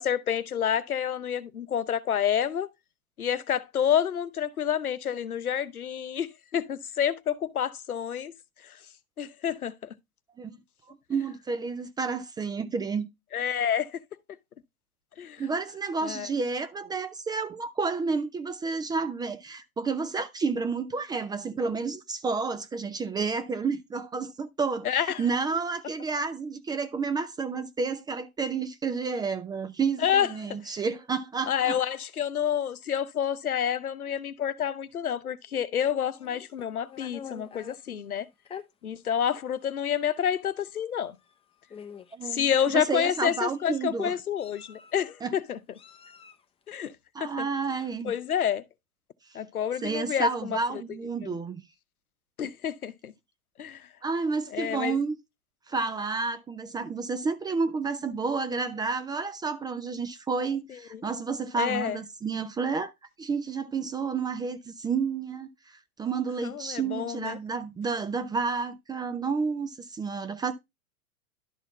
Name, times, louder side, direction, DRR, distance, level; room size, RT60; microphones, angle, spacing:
voice 1, 0.0-2.7 3.2-8.3 8.6-8.8 9.2-9.7 13.3-14.0 15.2-15.4 16.0-16.3 24.8-25.2 30.0-30.3 30.7-30.8 31.5-38.3 38.8-41.2 42.2-45.6 46.7-46.9 47.2-47.5 48.0-48.6 49.3-50.6 51.2-51.3 52.4-53.1 53.6-53.9 54.5-55.0 60.7-61.0 61.6-62.0 66.4-67.4, left 9 dB, 90° left, 0.8 m, -28 dB
voice 2, 10.9-13.1 15.4-31.8 42.1-44.2 45.2-45.3 47.1-48.1 49.8-51.6 54.0-55.2 55.7-62.9 63.2-70.5, right 4 dB, 10° right, 0.4 m, -30 dB
Meow, 36.1-37.8 38.4-38.7 39.5-39.6 40.0-40.2 41.2-41.3 41.7-42.2 42.8-43.6 44.4-45.1 45.7-46.4, left 7 dB, 15° left, 0.8 m, -46 dB
11.5 x 4.2 x 3.9 m
hypercardioid pair, 100°, 42 cm